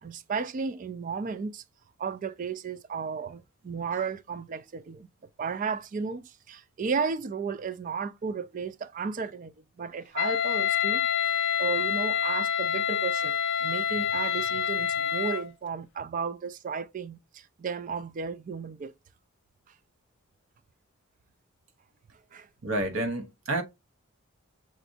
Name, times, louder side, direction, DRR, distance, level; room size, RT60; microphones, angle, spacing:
voice 1, 0.0-1.6 2.0-5.1 5.4-11.0 11.6-18.9 22.3-22.5, right 5 dB, 35° right, 0.3 m, -34 dB
Wind instrument woodwind instrument, 10.2-15.5, left 8 dB, 55° left, 0.3 m, -27 dB
voice 2, 22.6-23.6, right 2 dB, 65° right, 0.9 m, -29 dB
6.0 x 2.5 x 2.5 m
head